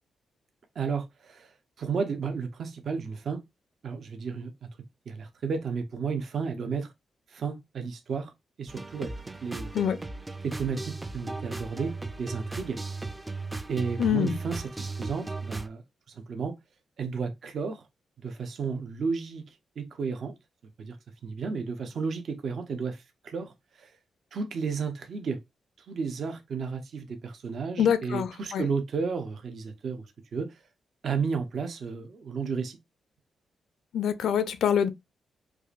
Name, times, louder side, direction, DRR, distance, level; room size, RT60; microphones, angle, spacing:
voice 1, 0.8-1.5 1.8-3.4 3.8-4.7 5.1-6.9 7.3-8.3 8.6-9.1 9.4-9.7 10.4-12.8 13.7-15.8 16.1-16.6 17.0-17.8 18.2-19.4 19.8-20.3 20.8-21.0 21.2-23.9 24.3-25.4 25.9-30.1 30.3-30.6 31.0-32.8, right 5 dB, 60° right, 0.6 m, -32 dB
sound 1, 8.7-15.7, right 3 dB, 15° right, 0.4 m, -37 dB
voice 2, 14.0-14.4 27.8-28.6 33.9-34.9, left 8 dB, 85° left, 0.5 m, -25 dB
4.7 x 2.5 x 2.4 m
cardioid pair, 115°, 0 cm